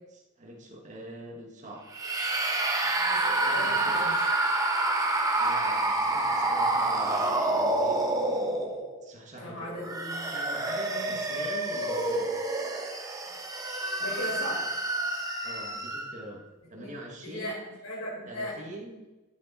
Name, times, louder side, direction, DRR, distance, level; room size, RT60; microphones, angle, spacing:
voice 1, 0.4-1.9 3.5-4.2 5.4-8.0 9.0-9.7 10.3-12.3 15.4-16.4 16.7-17.6 18.3-19.0, right 1 dB, 35° right, -1 dB, 2.0 m, -43 dB
sound 1, 1.9-9.0 9.7-16.2, right 2 dB, 15° right, 1.4 m, -28 dB
voice 2, 2.9-4.1 9.4-10.3 10.9-11.2 13.2-13.3 14.0-14.7 16.7-16.9 17.2-18.6, equal, 65° left, -5 dB, 4.7 m, -38 dB
13.0 x 8.8 x 4.3 m, 1.1 s
head